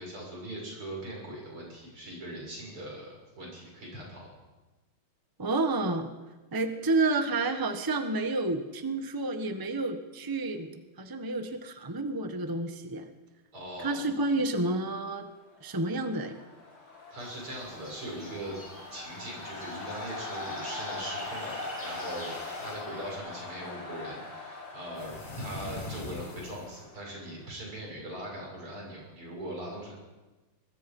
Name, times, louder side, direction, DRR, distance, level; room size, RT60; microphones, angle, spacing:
voice 1, 0.0-4.3 13.5-14.0 17.1-18.6 18.9-29.9, right 1 dB, 85° right, -2 dB, 7.9 m, -40 dB
voice 2, 5.4-6.1 6.5-13.1 13.8-15.3 15.6-16.4, right 2 dB, 10° right, 7 dB, 1.1 m, -30 dB
sound 1, 15.6-27.5, left 3 dB, 80° left, 6.1 m, -42 dB
sound 2, 17.2-23.2, equal, 5° left, 8.0 m, -48 dB
sound 3, 21.1-22.9 25.0-26.8, left 3 dB, 25° left, 1.5 m, -43 dB
24.0 x 21.0 x 5.5 m, 1.2 s
omnidirectional pair, 2.3 m